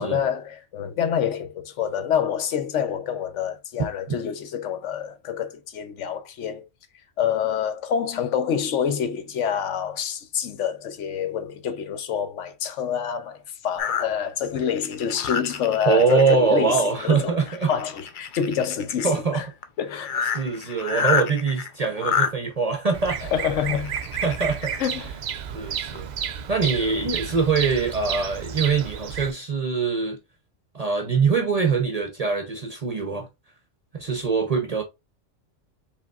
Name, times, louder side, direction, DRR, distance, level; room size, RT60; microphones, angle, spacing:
voice 1, 0.0-6.6 7.2-17.4 17.6-19.5 19.8-20.3 20.6-20.7 23.2-24.0 24.8-25.1, left 8 dB, 70° left, 1.0 m, -27 dB
sound 1, 13.8-16.3 16.8-17.1 17.4-19.1 19.6-19.7 19.9-22.3 23.3-24.9 25.5-25.6 25.9-26.0, left 6 dB, 55° left, 0.6 m, -28 dB
voice 2, 15.9-17.7 19.0-19.4 20.3-23.2 24.2-24.7 25.5-30.2 30.7-33.3 33.9-34.8, right 5 dB, 40° right, 0.6 m, -23 dB
Bird vocalization bird call bird song, 22.9-29.3, right 8 dB, 90° right, 0.4 m, -32 dB
5.1 x 3.4 x 2.3 m
omnidirectional pair, 1.3 m